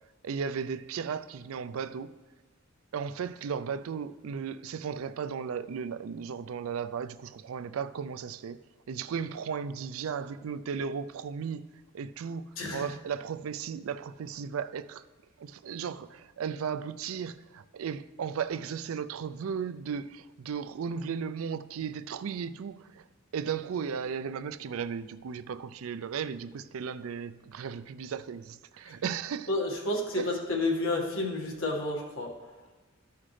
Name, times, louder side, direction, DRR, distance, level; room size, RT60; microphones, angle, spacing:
voice 1, 0.2-2.1 2.9-8.6 8.9-11.7 11.9-12.4 12.7-15.0 15.4-23.0 23.3-29.5 30.1-30.3, right 6 dB, 80° right, 0.4 m, -35 dB
voice 2, 29.5-32.3, left 2 dB, 70° left, 1.7 m, -30 dB
13.5 x 5.8 x 3.2 m
head